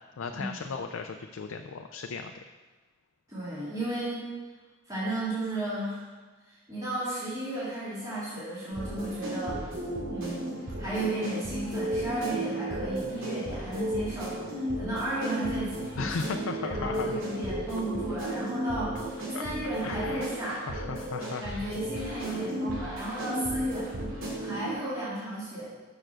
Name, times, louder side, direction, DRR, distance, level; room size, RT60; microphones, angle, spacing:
voice 1, 0.2-2.3 16.0-17.2 19.3-19.5 19.8-21.4 22.2-22.4, left 5 dB, 90° left, 5 dB, 0.4 m, -36 dB
voice 2, 3.3-4.2 4.9-6.0 6.5-9.6 10.1-16.0 16.6-20.6 21.4-23.9 24.4-25.7, right 1 dB, 20° right, -10 dB, 2.5 m, -34 dB
sound 1, 8.7-24.7, right 1 dB, 90° right, 2.3 m, -34 dB
6.6 x 6.1 x 6.2 m, 1.3 s
head